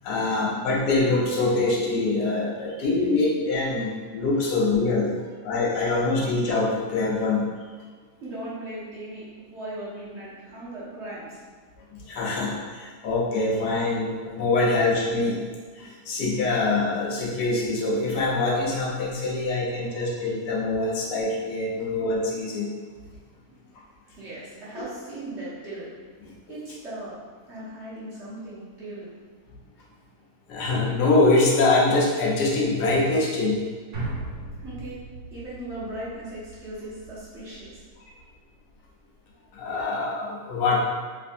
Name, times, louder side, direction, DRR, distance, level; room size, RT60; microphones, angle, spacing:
voice 1, 0.0-5.1 5.4-7.7 11.9-15.4 15.7-22.7 23.0-23.1 30.5-33.6 39.5-40.8, left 2 dB, 85° left, -3 dB, 1.3 m, -24 dB
voice 2, 8.2-11.4 23.5-23.6 24.2-25.9 26.5-29.1 34.6-35.0 35.3-37.8, right 1 dB, 50° right, -9 dB, 1.2 m, -38 dB
sound 1, 33.9-38.4 38.7-38.8, right 2 dB, 85° right, 1.7 m, -38 dB
3.3 x 3.3 x 2.6 m, 1.5 s
omnidirectional pair, 1.7 m